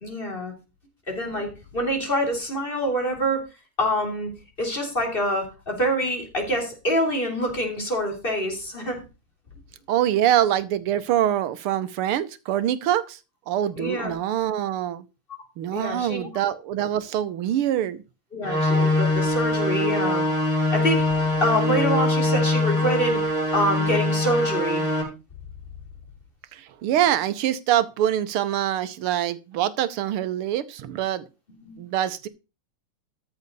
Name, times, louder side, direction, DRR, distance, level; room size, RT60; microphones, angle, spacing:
voice 1, 0.0-0.5 1.1-3.4 3.8-4.3 4.6-9.0 13.8-14.1 15.7-16.3 18.3-20.2 20.7-23.2 23.5-24.8 31.6-31.8, equal, 25° left, 3.6 m, -26 dB
voice 2, 9.9-13.2 13.5-15.0 15.6-18.0 26.5-31.2 31.8-32.3, right 11 dB, 85° right, 1.8 m, -24 dB
sound 1, 18.4-25.0, left 2 dB, 45° left, 6.7 m, -23 dB
13.5 x 8.1 x 4.1 m
omnidirectional pair, 2.3 m